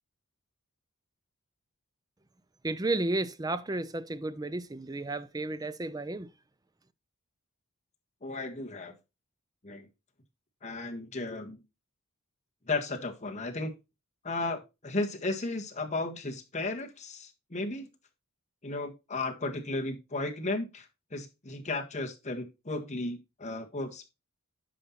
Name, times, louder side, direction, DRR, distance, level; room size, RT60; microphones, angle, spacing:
voice 1, 2.6-6.3, right 2 dB, 15° right, 0.6 m, -32 dB
voice 2, 8.2-8.9 9.6-9.9 10.6-11.6 12.7-13.7 14.2-17.9 18.6-24.1, left 2 dB, 35° left, 1.6 m, -34 dB
10.0 x 5.6 x 4.2 m
head